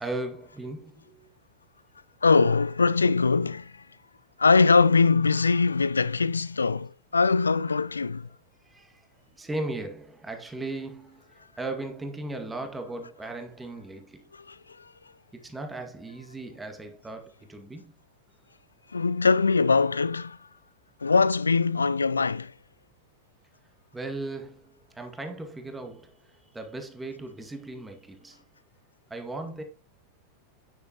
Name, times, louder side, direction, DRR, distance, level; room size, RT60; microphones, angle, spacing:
voice 1, 0.0-1.3 8.7-9.1 9.3-14.3 15.3-17.9 23.9-28.4 29.1-29.6, right 2 dB, 10° right, 2.0 m, -37 dB
voice 2, 2.2-3.8 4.4-8.3 14.3-14.9 18.9-20.4 21.0-22.5, left 4 dB, 75° left, 0.5 m, -22 dB
9.6 x 9.0 x 3.0 m
figure-of-eight pair, 90°, 0 cm